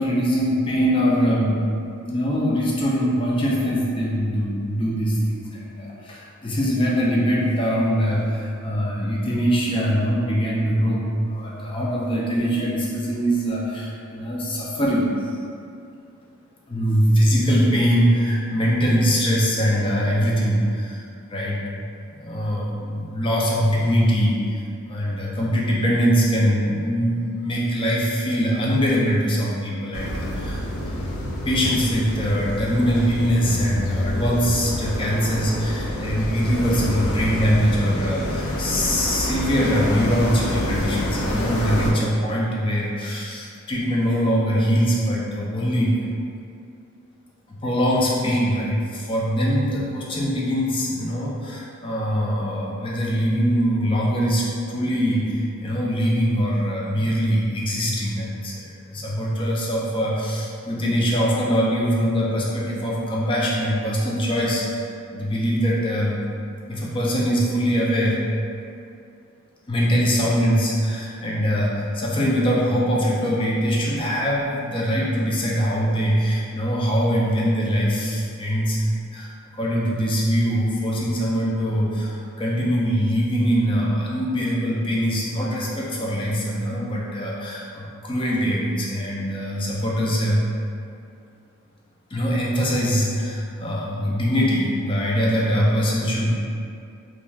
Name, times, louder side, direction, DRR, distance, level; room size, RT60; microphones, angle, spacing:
voice 1, 0.0-1.6 2.1-15.3 16.7-21.0 21.3-21.6 22.1-24.6 24.8-31.1 31.5-46.0 47.5-66.2 66.7-68.2 69.7-90.5 92.1-96.3, equal, 25° left, -4 dB, 0.4 m, -22 dB
sound 1, 29.9-41.9, left 1 dB, 85° left, 0.4 m, -27 dB
3.1 x 2.5 x 2.3 m, 2.4 s
head